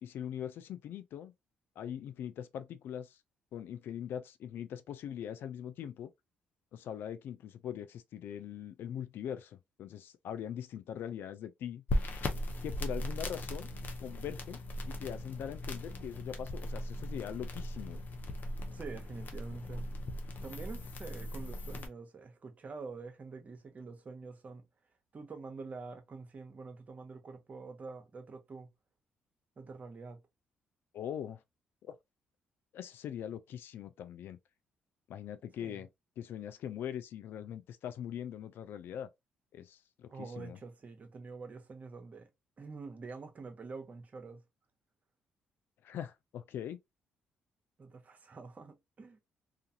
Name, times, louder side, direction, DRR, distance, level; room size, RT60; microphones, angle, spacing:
voice 1, 0.0-1.3 1.8-3.2 3.5-6.1 6.7-11.8 12.6-13.7 14.0-14.6 14.9-18.0 30.9-31.4 31.8-32.0 32.7-34.4 35.1-35.9 36.2-39.1 39.5-40.6 45.8-46.8, left 9 dB, 70° left, 0.4 m, -41 dB
sound 1, 11.9-21.9, left 1 dB, 50° left, 0.7 m, -38 dB
voice 2, 18.7-19.9 20.4-24.7 25.1-28.7 29.6-30.2 35.6-35.8 40.1-42.3 42.6-44.4 47.8-49.2, right 4 dB, 40° right, 0.8 m, -46 dB
2.4 x 2.4 x 2.7 m
supercardioid pair, 60°, 4 cm